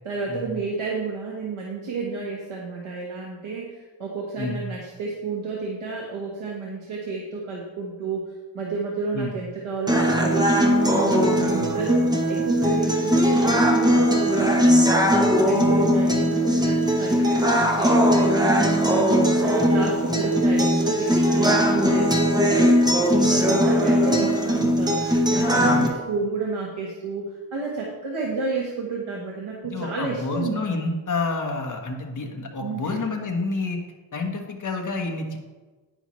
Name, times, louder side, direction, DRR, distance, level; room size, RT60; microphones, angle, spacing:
voice 1, 0.0-8.2 8.5-15.1 15.4-25.0 25.3-30.6 32.6-33.0, right 4 dB, 85° right, -2 dB, 1.5 m, -31 dB
sound 1, 9.9-25.9, equal, 10° right, 0.9 m, -20 dB
voice 2, 25.5-25.9 29.6-33.8 34.1-35.4, left 3 dB, 40° left, 2 dB, 1.3 m, -29 dB
10.0 x 9.7 x 3.1 m, 1.3 s
wide cardioid pair, 175°, 47 cm